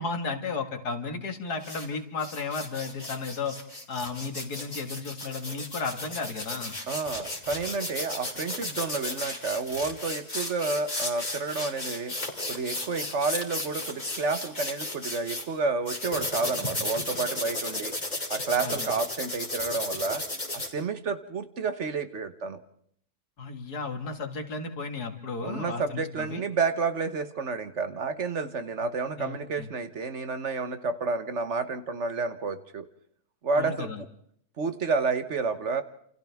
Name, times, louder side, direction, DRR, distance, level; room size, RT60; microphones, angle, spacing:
voice 1, 0.0-3.6 3.9-6.7 18.6-18.9 23.4-26.4 29.2-29.7 33.6-34.0, left 4 dB, 90° left, 6 dB, 2.4 m, -34 dB
sound 1, 1.6-1.9 2.2-15.4 15.9-20.7, left 1 dB, 25° left, 2.9 m, -34 dB
voice 2, 6.9-12.2 12.5-18.0 18.3-20.2 20.5-22.6 25.4-32.9 33.4-33.9 34.6-35.8, right 4 dB, 50° right, 11 dB, 1.3 m, -30 dB
29.5 x 28.0 x 3.5 m, 0.66 s
omnidirectional pair, 1.6 m